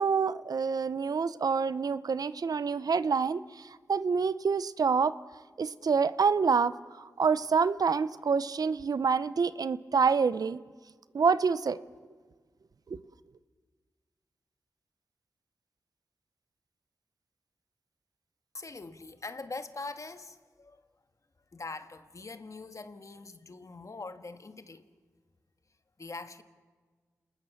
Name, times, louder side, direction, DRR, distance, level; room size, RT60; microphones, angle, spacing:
voice 1, 0.0-5.1 5.6-6.7 7.2-10.6 11.1-11.8 12.9-13.0, right 5 dB, 70° right, 0.7 m, -27 dB
voice 2, 18.5-20.8 21.5-24.9 26.0-26.4, left 3 dB, 55° left, 1.6 m, -43 dB
28.5 x 19.5 x 7.2 m
cardioid pair, 45°, 7 cm